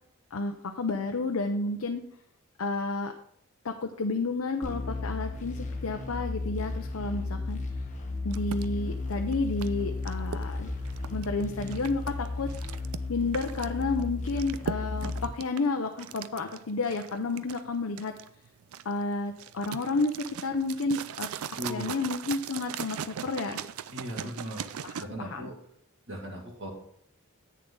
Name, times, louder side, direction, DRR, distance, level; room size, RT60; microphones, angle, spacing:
voice 1, 0.3-2.0 2.6-3.1 3.6-7.6 8.2-10.7 11.1-12.5 13.1-18.1 18.8-21.3 21.7-23.6 24.2-24.3 24.8-25.5, left 3 dB, 70° left, 4 dB, 0.6 m, -31 dB
sound 1, 4.6-15.3, left 3 dB, 35° left, 1.1 m, -34 dB
sound 2, 8.3-25.0, right 8 dB, 80° right, 0.4 m, -40 dB
voice 2, 21.6-22.0 23.9-24.7 25.0-25.6 26.1-26.7, equal, 60° right, 0 dB, 2.2 m, -38 dB
8.6 x 6.9 x 3.8 m, 0.68 s
head